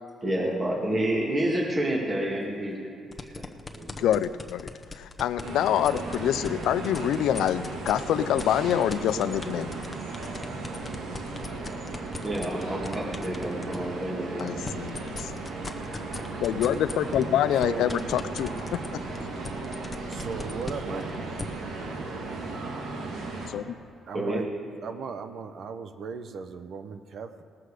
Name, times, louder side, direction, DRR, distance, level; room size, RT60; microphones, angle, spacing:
voice 1, 0.2-2.8 3.0-3.4 3.7-4.1 12.2-14.5 20.9-21.0 24.1-24.4, right 1 dB, 30° right, -2 dB, 2.1 m, -29 dB
sound 1, 3.1-8.0 8.4-13.9 14.3-21.4, left 3 dB, 20° left, 0.9 m, -38 dB
voice 2, 4.0-9.8 14.4-15.4 16.4-19.0 23.5-23.7, left 10 dB, 85° left, 14 dB, 0.4 m, -26 dB
sound 2, 5.4-23.5, right 3 dB, 85° right, 1.7 m, -36 dB
voice 3, 17.5-18.0 20.1-21.1 24.1-24.5 24.8-27.4, right 5 dB, 65° right, 9 dB, 0.8 m, -37 dB
19.0 x 7.7 x 4.9 m, 2.5 s
cardioid pair, 90°, 0 cm